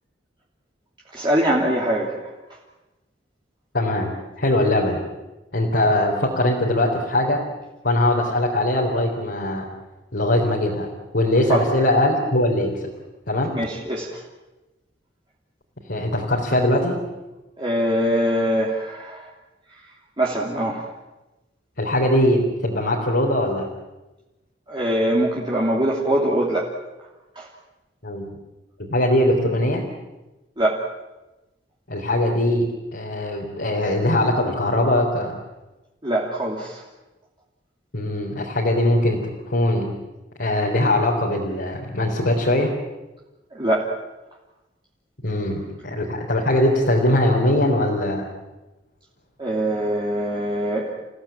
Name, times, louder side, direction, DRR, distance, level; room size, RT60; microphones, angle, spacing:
voice 1, 1.1-2.3 11.5-11.6 13.5-14.2 17.6-19.3 20.2-20.9 24.7-26.7 27.4-27.5 30.6-30.8 36.0-36.8 43.5-43.9 49.4-50.9, right 1 dB, 25° right, -4 dB, 3.0 m, -23 dB
voice 2, 3.7-4.1 4.4-5.0 5.5-7.4 7.8-9.7 10.1-10.9 11.1-12.9 13.3-13.5 15.9-17.0 21.8-23.7 28.0-28.3 28.8-29.8 31.9-35.3 37.9-39.9 40.4-42.7 45.2-48.2, left 1 dB, 65° left, -3 dB, 3.8 m, -21 dB
30.0 x 16.5 x 9.0 m, 1.1 s
head